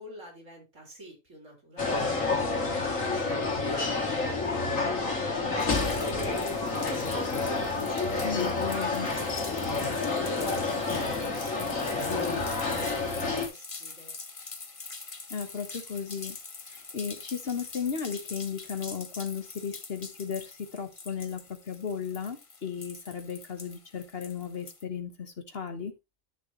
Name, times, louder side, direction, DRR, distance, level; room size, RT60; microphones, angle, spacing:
voice 1, 0.0-2.2 2.5-4.9 5.4-7.4 7.8-12.9 13.1-14.1, right 1 dB, 65° right, 3.7 m, -46 dB
sound 1, 1.8-13.5, left 3 dB, 75° left, 2.4 m, -29 dB
sound 2, 5.6-24.8, left 4 dB, 30° left, 0.9 m, -44 dB
voice 2, 8.2-9.1 15.3-16.4 16.7-25.9, left 6 dB, 50° left, 1.3 m, -35 dB
11.0 x 6.9 x 3.0 m
omnidirectional pair, 1.4 m